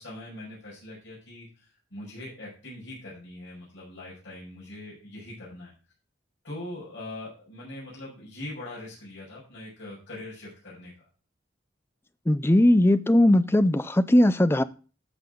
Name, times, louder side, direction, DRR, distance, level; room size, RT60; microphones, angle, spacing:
voice 1, 0.0-5.7 6.4-10.9, left 1 dB, 80° left, 5.8 m, -42 dB
voice 2, 12.3-14.6, left 1 dB, 10° left, 0.4 m, -19 dB
14.0 x 5.5 x 3.8 m
head